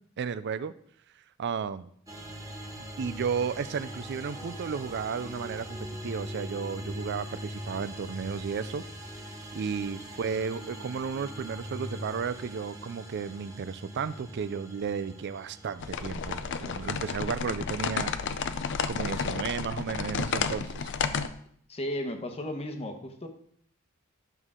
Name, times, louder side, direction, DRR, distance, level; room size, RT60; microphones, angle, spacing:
voice 1, 0.2-0.7 1.4-1.9 3.0-8.8 9.5-18.4 18.9-20.9, right 6 dB, 55° right, 14 dB, 0.4 m, -33 dB
sound 1, 2.1-21.2, equal, 15° right, 1.1 m, -43 dB
sound 2, 15.8-21.3, left 5 dB, 60° left, 0.5 m, -31 dB
voice 2, 21.7-23.3, left 1 dB, 30° left, 5 dB, 1.1 m, -34 dB
11.0 x 6.3 x 3.7 m, 0.64 s
head